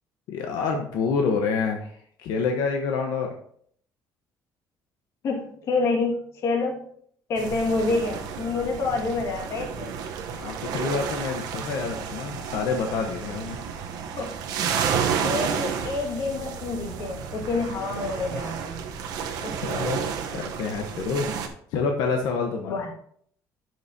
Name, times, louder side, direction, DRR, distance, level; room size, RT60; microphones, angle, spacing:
voice 1, 0.3-1.9 2.2-3.3 10.4-13.6 19.6-20.0 20.3-21.3 21.7-22.8, left 5 dB, 80° left, 3 dB, 1.0 m, -27 dB
voice 2, 5.2-6.9 7.3-9.9 14.2-14.3 15.2-18.8 19.4-19.6 20.7-20.9 22.7-22.9, left 3 dB, 45° left, 1 dB, 1.9 m, -28 dB
sound 1, 7.4-21.5, right 7 dB, 70° right, 0.9 m, -31 dB
12.0 x 6.3 x 2.8 m, 0.63 s
cardioid pair, 170°, 7 cm